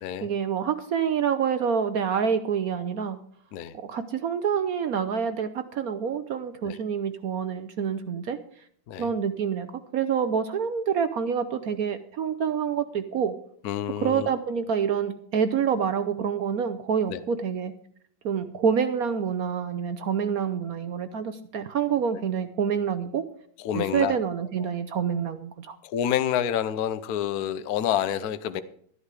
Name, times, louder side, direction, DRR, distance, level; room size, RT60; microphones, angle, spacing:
voice 1, 0.2-3.2 3.7-8.4 9.0-9.7 9.9-13.3 14.0-17.7 18.2-23.2 23.7-25.8, right 7 dB, 65° right, 11 dB, 0.9 m, -27 dB
voice 2, 13.6-14.3 17.1-17.2 23.6-24.2 24.6-24.7 25.8-28.6, left 10 dB, 65° left, 12 dB, 1.0 m, -28 dB
13.0 x 10.5 x 4.8 m, 0.62 s
omnidirectional pair, 2.3 m